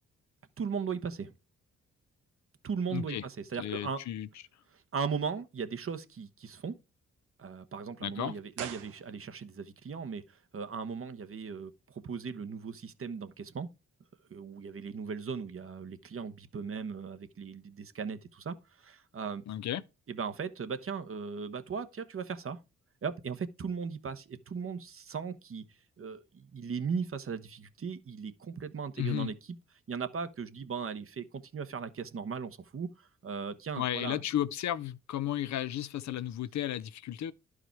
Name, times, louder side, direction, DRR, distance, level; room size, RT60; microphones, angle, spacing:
voice 1, 0.6-1.3 2.6-4.0 4.9-6.8 7.4-13.7 14.3-19.4 20.1-22.6 23.0-25.6 26.0-29.3 29.9-34.2, right 6 dB, 45° right, 1.2 m, -37 dB
voice 2, 2.9-3.2 3.6-4.3 8.0-8.3 19.5-19.8 29.0-29.3 33.8-37.3, left 12 dB, 65° left, 0.7 m, -33 dB
sound 1, 8.5-9.6 9.9-10.0, right 10 dB, 85° right, 1.1 m, -44 dB
11.0 x 4.9 x 4.6 m
supercardioid pair, 55°, 30 cm